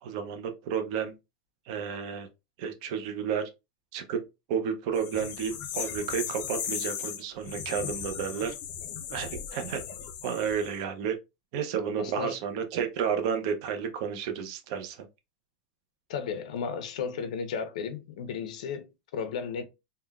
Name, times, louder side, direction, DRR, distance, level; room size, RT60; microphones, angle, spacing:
voice 1, 0.0-1.1 1.7-2.3 2.6-3.4 3.9-4.2 4.5-8.5 9.1-9.8 10.2-11.2 11.5-15.1, right 7 dB, 50° right, 0.6 m, -31 dB
sound 1, 4.9-10.8, left 8 dB, 35° left, 0.5 m, -37 dB
voice 2, 12.0-12.4 16.1-19.6, left 6 dB, 75° left, 0.6 m, -34 dB
3.6 x 2.2 x 2.3 m
supercardioid pair, 165°, 4 cm